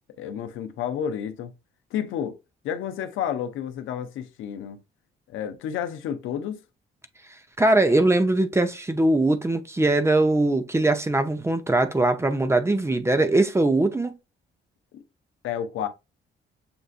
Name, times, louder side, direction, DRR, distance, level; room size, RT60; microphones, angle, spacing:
voice 1, 0.2-1.5 1.9-2.4 2.6-4.8 5.3-6.6 14.9-15.0 15.4-15.9, left 9 dB, 85° left, 0.6 m, -30 dB
voice 2, 7.6-14.1, right 2 dB, 15° right, 0.7 m, -21 dB
6.8 x 2.5 x 2.4 m
cardioid pair, 90°, 20 cm